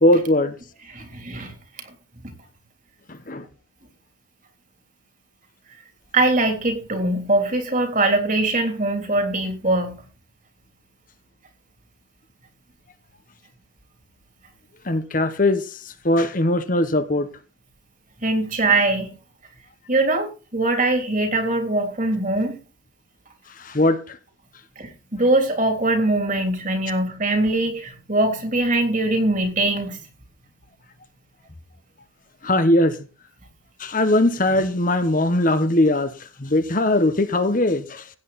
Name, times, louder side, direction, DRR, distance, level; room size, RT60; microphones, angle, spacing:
voice 1, 0.0-0.5 3.1-3.4 14.8-17.3 23.6-24.2 32.4-33.0 33.8-36.1 36.4-38.1, left 1 dB, 40° left, 1.1 m, -20 dB
voice 2, 0.9-1.5 1.8-1.9 6.1-10.0 18.2-19.1 19.9-22.6 24.8-30.0, right 2 dB, 40° right, 3.5 m, -22 dB
16.0 x 9.1 x 4.2 m
head